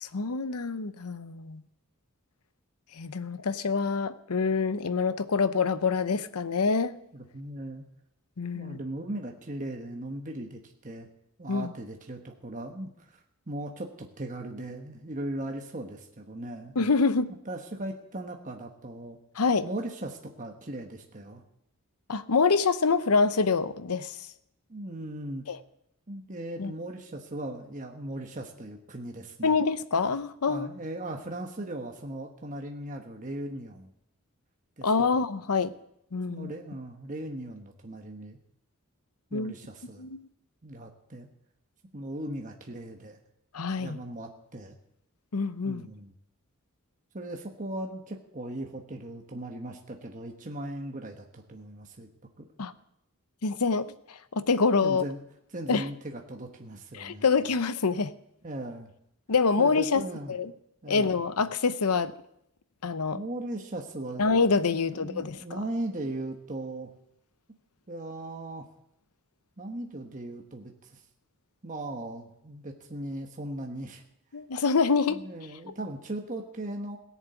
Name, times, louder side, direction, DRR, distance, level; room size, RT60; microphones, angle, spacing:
voice 1, 0.0-1.6 2.9-7.0 8.4-8.8 11.5-11.7 16.8-17.3 19.4-19.6 22.1-24.2 25.5-25.6 26.6-26.7 29.4-30.7 34.8-35.7 36.1-36.5 39.3-39.5 40.0-40.3 43.5-44.0 45.3-45.9 52.6-52.7 53.4-55.0 55.7-55.8 56.9-58.1 59.3-60.0 60.3-60.5 60.9-62.1 62.8-63.2 64.2-65.6 74.3-75.2, left 4 dB, 90° left, 13 dB, 0.8 m, -26 dB
voice 2, 7.1-7.9 8.5-11.1 11.4-13.2 13.5-16.7 17.4-19.2 19.6-21.4 24.7-25.4 26.1-29.5 30.5-33.9 34.8-35.2 36.3-38.4 39.3-40.1 40.6-41.3 41.9-43.2 43.8-44.8 45.6-46.1 47.1-52.1 52.4-52.5 54.8-55.2 55.5-57.3 58.4-58.9 59.6-60.4 60.8-61.2 63.1-64.2 64.7-66.9 67.9-68.7 69.6-71.0 71.6-74.0 75.1-77.0, right 1 dB, 35° right, 2 dB, 1.2 m, -38 dB
17.0 x 7.3 x 8.4 m, 0.78 s
head